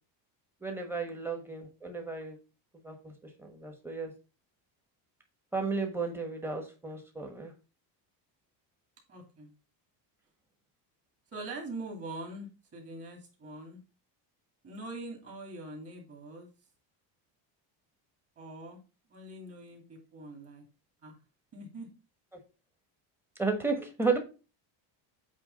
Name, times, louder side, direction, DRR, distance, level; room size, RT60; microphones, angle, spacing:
voice 1, 0.6-2.4 2.8-3.1 3.4-4.1 5.5-7.5 23.4-24.2, right 4 dB, 5° right, 3 dB, 1.2 m, -33 dB
voice 2, 9.1-9.5 11.3-13.8 14.6-16.5 18.4-18.8 19.1-20.6 21.0-21.2 21.5-21.9, right 2 dB, 30° right, 1 dB, 2.4 m, -43 dB
8.2 x 3.1 x 5.2 m, 0.32 s
cardioid pair, 170°, 45 cm